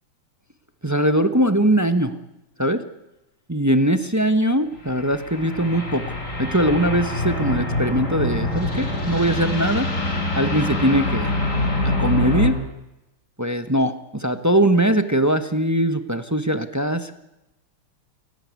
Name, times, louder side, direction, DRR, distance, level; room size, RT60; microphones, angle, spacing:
voice 1, 0.8-2.2 2.6-2.8 3.5-6.0 6.4-9.9 10.3-11.3 11.8-12.6 13.4-17.1, right 1 dB, 15° right, 8 dB, 0.7 m, -21 dB
sound 1, 4.8-12.5, left 2 dB, 35° left, 4.4 m, -25 dB
29.0 x 16.0 x 9.6 m, 0.95 s
omnidirectional pair, 2.4 m